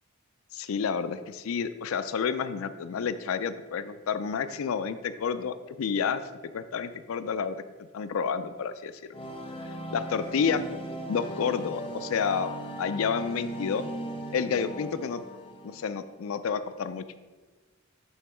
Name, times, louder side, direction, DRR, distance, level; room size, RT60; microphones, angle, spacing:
voice 1, 0.5-9.2 9.9-10.7 11.1-12.5 12.8-13.9 14.3-15.2 15.6-17.0, left 6 dB, 70° left, 12 dB, 0.4 m, -30 dB
sound 1, 9.1-16.0, right 1 dB, 25° left, 0.6 m, -38 dB
7.1 x 3.6 x 4.4 m, 1.3 s
head